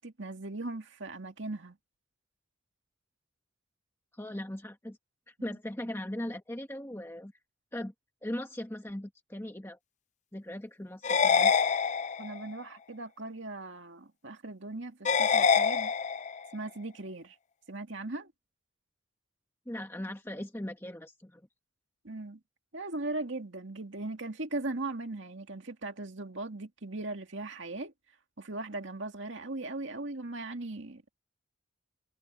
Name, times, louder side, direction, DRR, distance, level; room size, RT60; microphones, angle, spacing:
voice 1, 0.0-1.8 5.5-5.6 12.2-15.9 16.5-17.4 17.7-18.3 22.0-22.4 22.7-27.9 28.4-31.0, right 2 dB, 65° right, 2.2 m, -39 dB
voice 2, 4.1-5.0 5.3-7.3 7.7-7.9 8.2-9.8 10.3-11.5 19.7-21.4, left 1 dB, 10° left, 1.3 m, -39 dB
sound 1, 11.0-12.5 15.0-16.5, left 6 dB, 35° left, 0.4 m, -25 dB
head